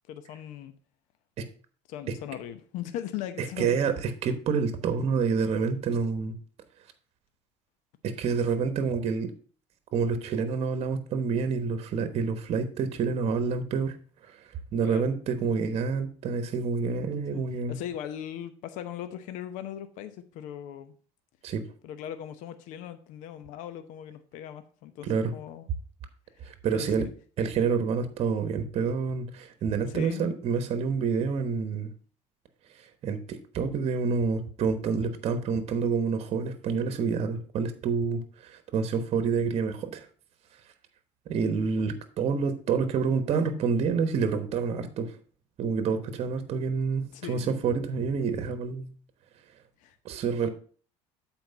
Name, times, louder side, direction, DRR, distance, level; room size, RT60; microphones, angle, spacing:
voice 1, 0.1-0.7 1.9-3.9 14.8-15.1 17.3-17.4 17.7-20.9 21.8-25.7 26.4-27.1 29.9-30.3 47.1-47.6 49.8-50.0, left 10 dB, 75° left, 0.8 m, -39 dB
voice 2, 3.4-6.4 8.0-9.3 9.9-13.9 14.2-14.4 14.7-17.8 21.4-21.6 25.0-25.3 26.4-27.1 27.4-31.9 33.0-40.1 41.3-45.1 45.6-48.9 50.0-50.5, right 5 dB, 50° right, 1.1 m, -28 dB
7.8 x 4.4 x 5.3 m
supercardioid pair, 100°, 13 cm